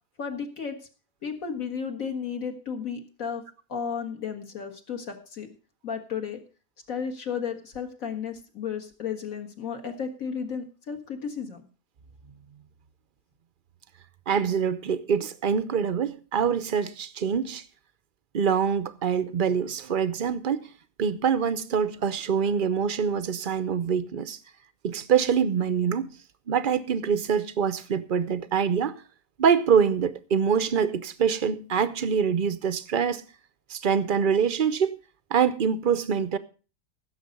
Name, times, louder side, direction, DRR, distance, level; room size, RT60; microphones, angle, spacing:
voice 1, 0.2-0.8 1.2-3.4 3.7-5.5 5.8-6.4 6.9-11.7, left 6 dB, 60° left, 2.1 m, -33 dB
voice 2, 14.3-17.6 18.3-20.7 21.0-24.4 24.8-26.1 26.5-29.0 29.4-33.2 33.7-35.0 35.3-36.4, right 7 dB, 50° right, 0.6 m, -25 dB
16.0 x 6.8 x 5.2 m
omnidirectional pair, 1.7 m